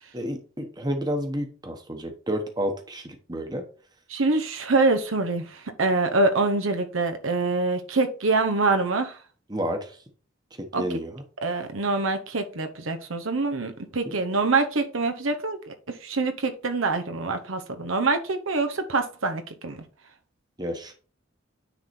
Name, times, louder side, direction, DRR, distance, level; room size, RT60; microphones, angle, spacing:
voice 1, 0.1-3.6 9.5-9.9 10.8-11.2 14.1-14.2 20.6-20.9, equal, 20° right, 5 dB, 1.1 m, -30 dB
voice 2, 4.1-9.2 10.7-10.8 11.4-19.8, right 3 dB, 85° right, 6 dB, 1.0 m, -25 dB
9.5 x 3.9 x 4.3 m, 0.39 s
head